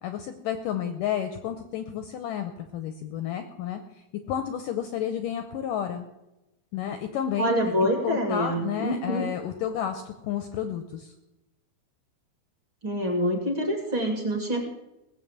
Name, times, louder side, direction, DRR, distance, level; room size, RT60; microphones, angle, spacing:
voice 1, 0.0-3.8 4.3-6.1 6.7-7.6 8.0-11.1, left 9 dB, 75° left, 8 dB, 2.0 m, -31 dB
voice 2, 7.4-9.3 12.8-14.7, equal, 35° right, 2 dB, 2.4 m, -26 dB
18.5 x 8.1 x 7.3 m, 0.95 s
omnidirectional pair, 4.7 m